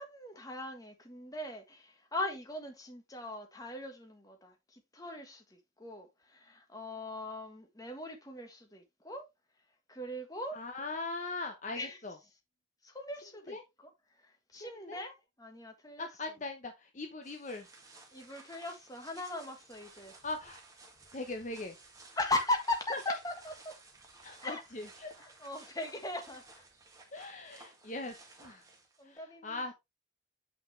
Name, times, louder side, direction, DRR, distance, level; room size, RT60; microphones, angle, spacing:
voice 1, 0.0-9.2 9.9-10.6 11.7-12.3 12.8-13.6 14.2-16.4 18.1-20.1 22.1-23.7 24.4-24.6 25.2-26.6 27.1-27.3 29.0-29.7, left 2 dB, 20° left, 1.5 m, -39 dB
voice 2, 10.5-12.2 13.5-13.6 14.5-15.0 16.0-17.7 20.2-20.6 21.1-21.8 22.9-23.1 24.2-25.2 27.1-28.6 29.0-29.7, left 2 dB, 40° left, 0.9 m, -40 dB
sound 1, 17.2-29.2, right 3 dB, 20° right, 1.9 m, -56 dB
8.0 x 5.7 x 3.2 m
head